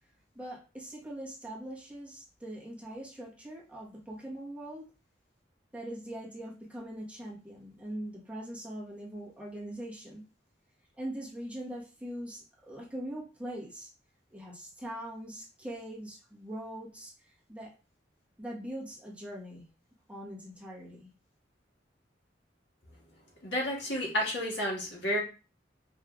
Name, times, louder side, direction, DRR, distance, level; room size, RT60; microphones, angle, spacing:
voice 1, 0.3-4.8 5.7-10.2 11.0-13.9 14.3-17.1 17.5-17.7 18.4-19.6 20.1-21.1, right 1 dB, 5° right, -5 dB, 1.2 m, -42 dB
voice 2, 23.4-25.2, left 1 dB, 70° left, -2 dB, 1.7 m, -31 dB
5.4 x 3.2 x 2.4 m, 0.33 s
head